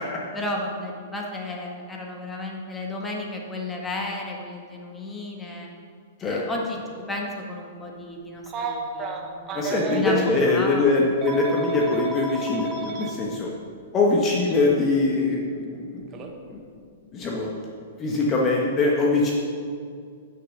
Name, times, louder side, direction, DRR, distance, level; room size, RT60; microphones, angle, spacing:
voice 1, 0.3-5.7 6.2-6.8 7.1-9.6 9.9-10.9, left 2 dB, 10° left, -1 dB, 1.6 m, -32 dB
Telephone, 8.5-10.3 11.2-13.1 14.5-14.6 16.1-16.3, right 4 dB, 30° right, 1.1 m, -32 dB
voice 2, 9.5-13.5 13.9-16.0 16.5-16.6 17.1-17.5 18.0-19.3, left 3 dB, 25° left, -2 dB, 1.4 m, -22 dB
9.4 x 6.6 x 6.5 m, 2.3 s
hypercardioid pair, 125°, 0 cm